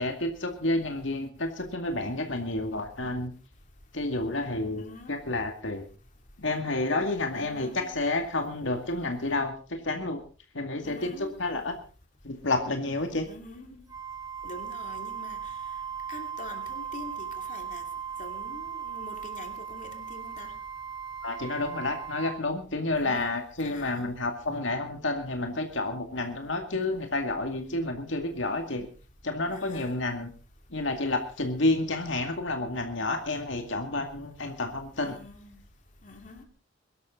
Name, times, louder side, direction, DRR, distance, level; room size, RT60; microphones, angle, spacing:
voice 1, 0.0-3.3 3.9-5.8 6.4-10.2 10.5-11.8 12.2-13.3 21.2-28.9 29.2-30.3 30.7-35.2, left 2 dB, 75° left, 2.2 m, -30 dB
voice 2, 4.8-5.3 7.3-8.1 10.8-11.6 13.3-13.8 14.4-15.5 16.1-17.8 18.2-20.6 22.9-24.1 29.5-30.0 35.0-35.6 36.0-36.4, left 2 dB, 40° left, 2.7 m, -45 dB
Wind instrument woodwind instrument, 13.9-22.5, right 7 dB, 20° right, 3.4 m, -38 dB
23.0 x 12.5 x 3.8 m
head